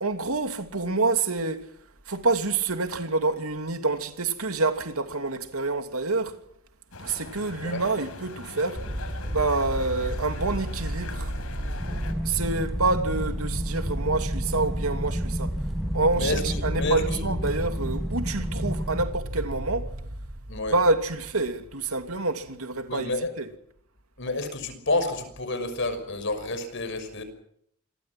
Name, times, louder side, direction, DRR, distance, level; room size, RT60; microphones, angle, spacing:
voice 1, 0.0-1.7 2.1-6.4 7.0-8.8 9.3-11.3 12.2-15.6 15.9-19.9 20.7-23.5, right 3 dB, 75° right, 2.8 m, -27 dB
sound 1, 6.9-12.1, left 2 dB, 80° left, 5.1 m, -41 dB
sound 2, 8.7-21.7, right 1 dB, 30° right, 3.1 m, -32 dB
sound 3, 11.8-19.1, equal, ahead, 1.0 m, -33 dB
voice 2, 16.2-17.2 20.5-20.7 22.9-23.3 24.2-27.2, left 2 dB, 55° left, 5.9 m, -29 dB
27.5 x 23.0 x 6.1 m
head